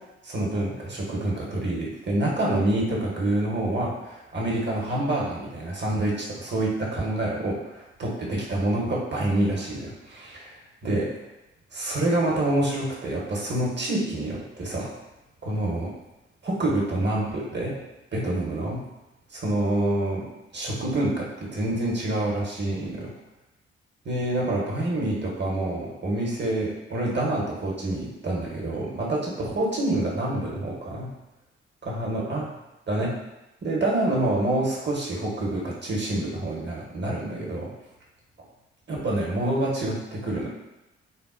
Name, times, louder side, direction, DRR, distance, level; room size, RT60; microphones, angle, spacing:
voice 1, 0.2-11.1 11.7-14.9 15.4-15.9 16.4-17.7 18.1-18.8 19.3-20.2 20.5-23.1 24.0-31.1 31.8-32.5 32.9-33.1 33.6-37.7 38.9-40.5, right 1 dB, 35° right, -3 dB, 1.0 m, -27 dB
4.0 x 2.1 x 2.5 m, 0.97 s
hypercardioid pair, 40°, 31 cm